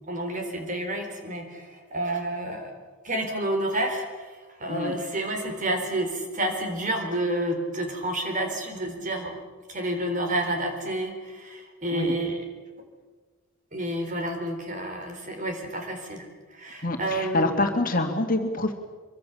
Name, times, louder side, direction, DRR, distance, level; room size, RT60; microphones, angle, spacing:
voice 1, 0.1-2.7 3.0-4.3 4.6-9.4 9.7-12.4 13.7-16.3 16.6-17.5, right 1 dB, 40° right, 4 dB, 4.1 m, -29 dB
voice 2, 16.8-18.7, left 2 dB, 40° left, 4 dB, 2.3 m, -26 dB
25.0 x 23.5 x 7.1 m, 1.4 s
head